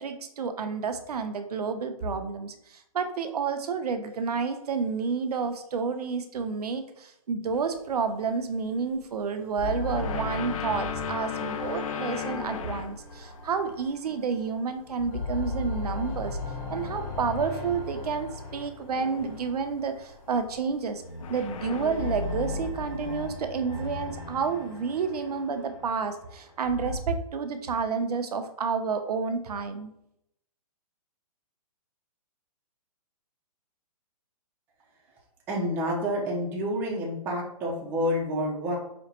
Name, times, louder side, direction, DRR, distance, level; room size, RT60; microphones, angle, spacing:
voice 1, 0.0-16.4 16.7-21.0 21.3-29.9, right 5 dB, 85° right, 8 dB, 0.6 m, -30 dB
sound 1, 7.5-7.8 9.0-9.1 9.9-13.1 13.4-14.3 14.8-16.3 16.7-17.0 17.5-17.7 18.9-19.6 20.0-22.9, left 8 dB, 60° left, 0.4 m, -37 dB
sound 2, 9.6-14.5 14.9-20.2 21.0-27.0, left 3 dB, 40° left, 1.4 m, -37 dB
voice 2, 35.5-38.8, equal, 10° right, -3 dB, 0.4 m, -28 dB
5.0 x 2.1 x 2.8 m, 0.78 s
hypercardioid pair, 155°, 19 cm